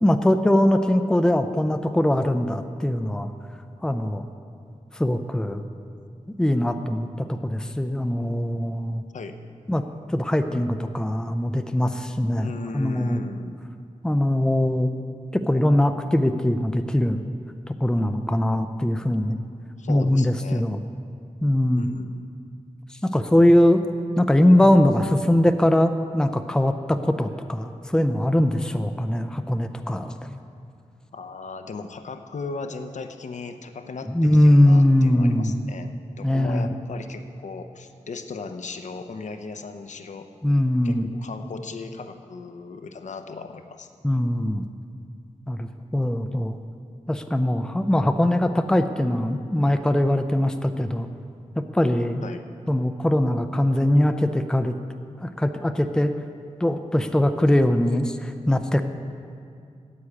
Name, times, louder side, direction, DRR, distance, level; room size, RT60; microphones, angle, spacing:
voice 1, 0.0-3.3 3.8-4.3 4.9-5.6 6.4-9.0 9.7-13.2 14.0-14.9 15.3-17.2 17.7-19.4 19.9-20.8 21.4-21.9 23.0-23.8 24.2-30.4 34.1-35.5 36.2-36.7 40.4-41.1 44.0-44.7 45.5-46.6 47.1-51.1 51.6-52.2 52.7-54.7 55.2-56.1 56.6-58.8, left 1 dB, 5° left, 8 dB, 0.5 m, -21 dB
voice 2, 12.4-13.6 19.8-20.8 21.7-22.2 31.1-35.9 36.2-40.3 40.8-43.9 52.2-52.4, left 4 dB, 70° left, 8 dB, 0.8 m, -37 dB
9.7 x 7.8 x 8.5 m, 2.3 s
wide cardioid pair, 95°, 13 cm